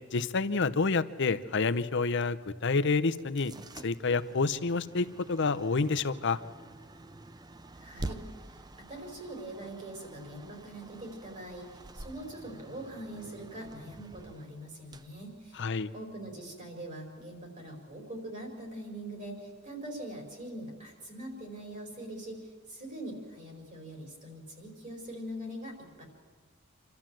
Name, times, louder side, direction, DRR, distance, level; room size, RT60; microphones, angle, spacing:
voice 1, 0.1-3.5 3.8-6.4 15.6-15.9, left 4 dB, 60° left, 11 dB, 0.7 m, -28 dB
sound 1, 3.1-16.0, right 2 dB, 20° right, 0.6 m, -47 dB
voice 2, 7.7-8.2 8.9-15.7 15.9-26.0, right 1 dB, 35° right, 2 dB, 4.8 m, -43 dB
27.5 x 13.0 x 7.6 m, 1.5 s
head